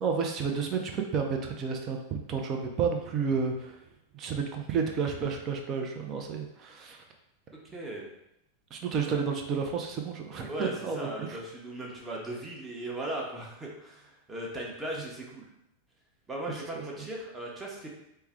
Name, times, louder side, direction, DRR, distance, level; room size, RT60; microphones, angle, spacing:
voice 1, 0.0-3.8 4.1-7.0 8.7-11.3, right 5 dB, 30° right, 3 dB, 0.6 m, -31 dB
voice 2, 7.5-8.1 9.1-9.2 10.5-15.5 16.3-17.9, right 1 dB, 15° right, -2 dB, 0.9 m, -38 dB
4.5 x 2.2 x 3.5 m, 0.83 s
figure-of-eight pair, 90°, 0 cm